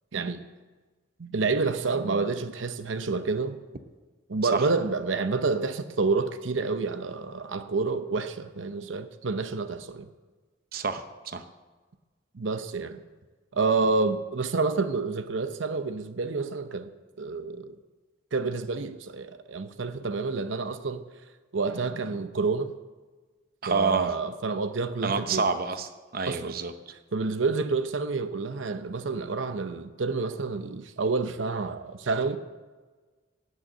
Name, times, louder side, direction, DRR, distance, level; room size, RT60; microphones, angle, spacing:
voice 1, 0.1-0.4 1.2-3.6 4.3-10.1 12.3-13.0 13.5-16.9 17.2-17.8 18.3-21.0 21.5-22.7 23.7-25.5 26.3-26.6 27.1-32.4, right 4 dB, 80° right, 0.7 m, -28 dB
voice 2, 10.7-11.5 23.6-24.2 25.0-26.7, right 4 dB, 50° right, 0.7 m, -28 dB
17.0 x 6.6 x 7.8 m
head